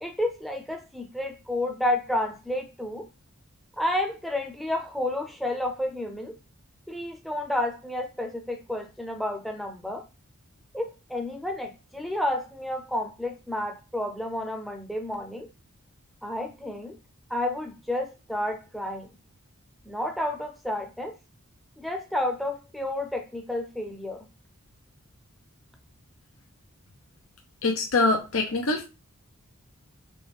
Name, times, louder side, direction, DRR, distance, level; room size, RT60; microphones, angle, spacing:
voice 1, 0.0-3.1 3.8-6.4 6.9-10.0 10.7-15.5 16.2-17.0 17.3-19.1 19.9-21.2 21.8-24.2, left 1 dB, ahead, 0.7 m, -31 dB
voice 2, 27.6-28.8, left 3 dB, 70° left, 0.8 m, -24 dB
4.2 x 3.2 x 3.6 m
head